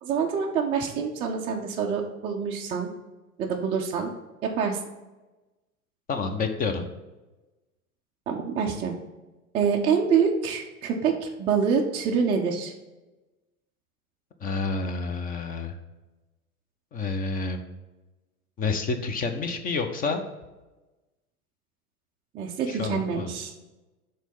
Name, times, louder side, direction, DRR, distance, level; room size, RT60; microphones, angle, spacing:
voice 1, 0.0-2.9 3.4-4.1 4.4-4.8 8.3-8.9 9.5-12.7 22.3-23.5, right 6 dB, 15° right, -1 dB, 0.3 m, -26 dB
voice 2, 6.1-6.9 14.4-15.7 16.9-17.6 18.6-20.2 22.7-23.3, left 4 dB, 20° left, 7 dB, 0.6 m, -29 dB
6.1 x 3.8 x 5.3 m, 1.1 s
figure-of-eight pair, 90°, 44 cm